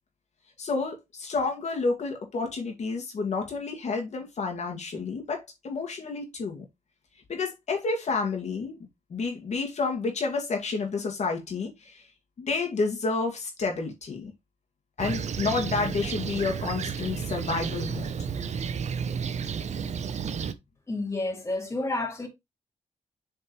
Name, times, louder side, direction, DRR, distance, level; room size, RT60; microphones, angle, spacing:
voice 1, 0.6-6.6 7.3-8.8 9.1-12.0 12.4-14.3 15.0-18.1, left 4 dB, 65° left, 2.0 m, -30 dB
Fixed-wing aircraft airplane, 15.0-20.5, right 6 dB, 65° right, 0.8 m, -32 dB
voice 2, 20.9-22.3, left 2 dB, 20° left, 2.1 m, -30 dB
7.9 x 4.5 x 3.1 m
wide cardioid pair, 120°, 13 cm